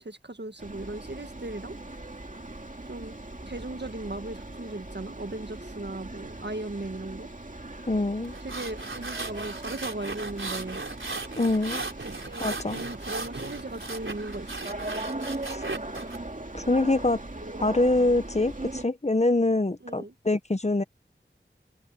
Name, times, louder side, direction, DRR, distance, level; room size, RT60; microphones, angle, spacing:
voice 1, 0.0-1.8 2.8-3.1 3.5-7.3 8.4-10.9 12.0-14.7 19.8-20.1, right 2 dB, 60° right, 1.6 m, -37 dB
sound 1, 0.6-18.8, right 2 dB, 40° right, 2.4 m, -39 dB
voice 2, 7.9-8.4 11.4-11.8 12.4-12.8 15.5-15.6 16.5-17.2 17.6-20.8, left 2 dB, 35° left, 0.9 m, -25 dB
sound 2, 8.2-16.2, right 3 dB, 90° right, 4.0 m, -36 dB
wide cardioid pair, 45°, 20 cm